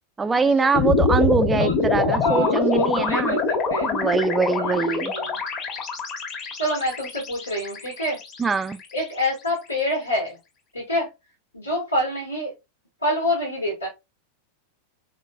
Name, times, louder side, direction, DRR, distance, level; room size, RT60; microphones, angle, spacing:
voice 1, 0.2-3.4 3.8-5.1 8.4-8.8, right 4 dB, 15° right, 0.4 m, -23 dB
sound 1, 0.7-9.0, left 4 dB, 35° left, 1.2 m, -25 dB
voice 2, 1.6-3.9 4.5-5.4 6.6-8.2 8.9-10.4 10.7-11.1 11.5-12.5 13.0-13.9, left 1 dB, 85° left, 1.4 m, -27 dB
4.2 x 3.1 x 2.3 m
figure-of-eight pair, 90°, 0 cm